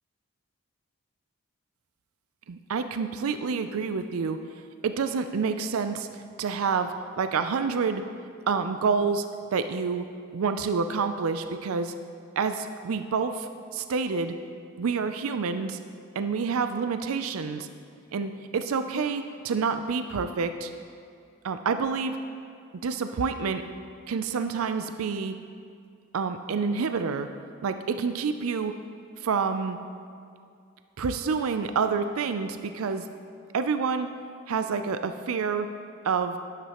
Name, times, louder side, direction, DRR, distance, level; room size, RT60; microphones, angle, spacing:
voice 1, 2.5-4.4 4.8-6.1 6.4-8.0 8.5-9.3 9.5-11.9 12.4-14.4 14.8-15.8 16.2-17.7 18.1-20.7 21.4-22.2 22.8-23.7 24.1-25.3 26.1-27.3 27.6-28.8 29.2-29.8 31.0-33.1 33.5-34.1 34.5-35.7 36.0-36.4, right 5 dB, 85° right, 9 dB, 0.4 m, -28 dB
12.0 x 11.0 x 3.0 m, 2.3 s
head